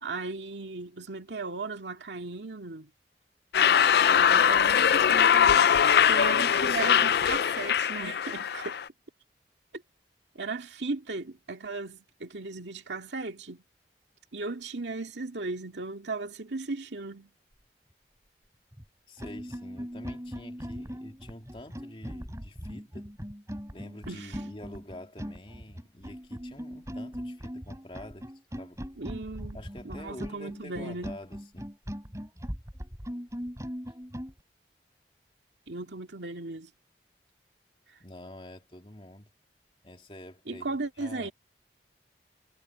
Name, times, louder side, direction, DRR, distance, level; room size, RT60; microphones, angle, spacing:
voice 1, 0.0-2.9 4.2-8.8 9.7-9.8 10.4-13.6 14.3-17.3 24.1-24.4 29.0-29.6 29.8-31.1 35.7-36.7 40.5-41.3, right 3 dB, 90° right, 2.2 m, -36 dB
sound 1, 3.5-8.9, left 8 dB, 65° left, 0.4 m, -22 dB
sound 2, 18.7-18.8 19.2-34.3, equal, 15° right, 7.3 m, -39 dB
voice 2, 19.1-23.1 23.7-28.3 28.6-28.8 29.5-31.7 38.0-39.3 39.8-41.3, left 1 dB, 30° left, 3.0 m, -47 dB
head